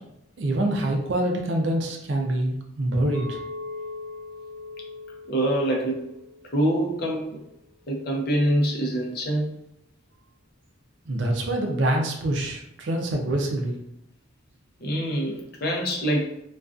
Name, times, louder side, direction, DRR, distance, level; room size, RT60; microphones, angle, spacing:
voice 1, 0.4-3.4 11.1-13.8, right 1 dB, 65° right, 2 dB, 0.4 m, -25 dB
Chink clink, 3.1-7.4, left 3 dB, 10° left, 1.2 m, -40 dB
voice 2, 5.3-6.0 6.5-7.4 7.9-9.5 14.8-16.3, right 1 dB, 50° left, 0 dB, 0.5 m, -25 dB
2.4 x 2.3 x 2.3 m, 0.80 s
head